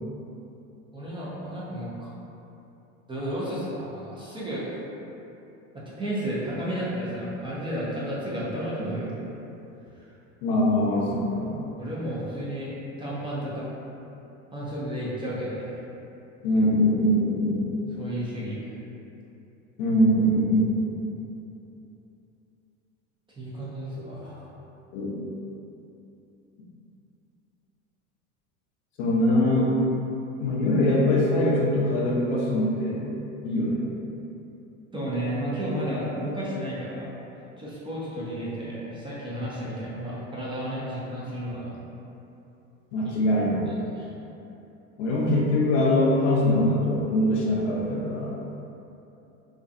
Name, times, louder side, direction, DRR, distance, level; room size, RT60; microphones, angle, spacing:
voice 1, 0.9-2.2 3.1-4.9 5.7-9.1 9.9-10.1 11.8-13.7 14.5-15.8 18.0-18.8 23.4-24.4 34.9-37.1 37.6-41.8 43.0-43.2 43.7-44.1, equal, 15° right, -8 dB, 0.5 m, -32 dB
voice 2, 10.4-11.6 16.4-17.6 19.8-20.8 24.9-25.2 29.0-29.8 30.4-33.0 33.4-33.8 42.9-43.7 45.0-48.3, left 1 dB, 65° left, -3 dB, 0.6 m, -23 dB
2.4 x 2.3 x 2.6 m, 2.9 s
hypercardioid pair, 85°, 39 cm